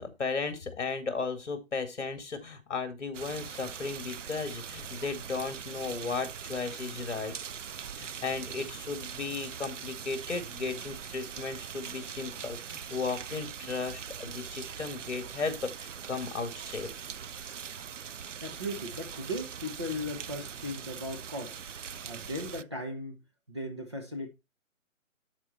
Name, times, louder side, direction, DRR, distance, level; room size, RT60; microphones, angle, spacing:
voice 1, 0.0-7.3 7.9-16.9, left 4 dB, 55° left, 2.2 m, -35 dB
sound 1, 3.1-22.6, right 7 dB, 60° right, 0.6 m, -42 dB
voice 2, 18.4-21.6 22.1-23.2 23.5-24.3, left 1 dB, 20° right, 0.9 m, -37 dB
12.0 x 4.4 x 4.2 m
hypercardioid pair, 175°, 41 cm